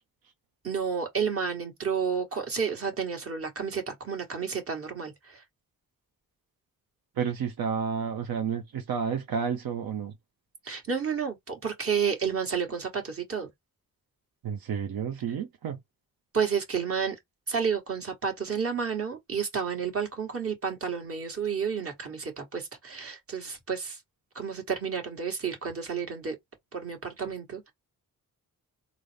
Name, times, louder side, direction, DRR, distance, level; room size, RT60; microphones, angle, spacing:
voice 1, 0.6-5.4 10.6-13.5 16.3-17.2 17.5-24.0 24.3-26.3 26.7-27.6, right 6 dB, 40° right, 1.4 m, -31 dB
voice 2, 7.2-10.1 14.4-15.8, right 7 dB, 80° right, 0.7 m, -31 dB
3.9 x 2.0 x 3.3 m
wide cardioid pair, 120°, 36 cm